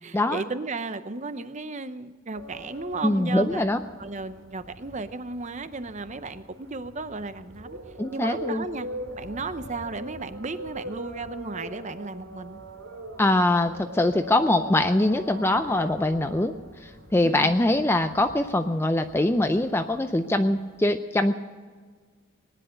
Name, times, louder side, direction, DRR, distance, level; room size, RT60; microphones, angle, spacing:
voice 1, 0.0-3.6 4.0-7.8 8.1-8.9 9.2-12.6 17.2-17.5, right 3 dB, 35° right, 12 dB, 0.7 m, -34 dB
sound 1, 2.3-20.8, equal, 85° right, 2.6 m, -42 dB
voice 2, 3.0-3.8 8.0-8.6 13.2-16.5 16.8-21.4, left 1 dB, 10° left, 8 dB, 0.5 m, -23 dB
19.5 x 10.5 x 6.6 m, 1.5 s
head